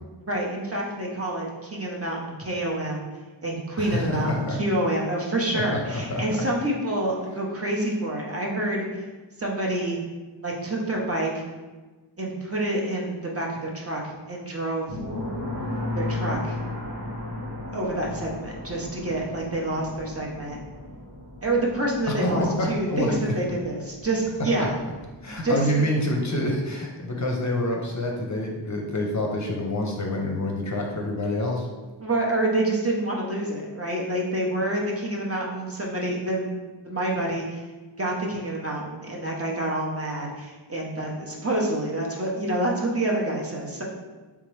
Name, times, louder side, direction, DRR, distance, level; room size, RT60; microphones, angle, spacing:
voice 1, 0.2-3.0 3.4-9.0 9.4-10.0 10.4-11.4 12.2-15.0 15.9-16.6 17.7-20.6 21.4-24.7 25.4-25.8 32.0-36.5 36.8-37.7 38.0-43.8, right 1 dB, 30° right, -2 dB, 0.8 m, -27 dB
voice 2, 3.8-4.6 5.5-6.2 22.1-23.3 24.6-24.7 25.2-31.7, left 1 dB, 40° left, 0 dB, 0.6 m, -27 dB
sound 1, 14.9-25.4, left 1 dB, 50° right, 1.1 m, -35 dB
3.5 x 2.9 x 3.2 m, 1.3 s
cardioid pair, 55°, 46 cm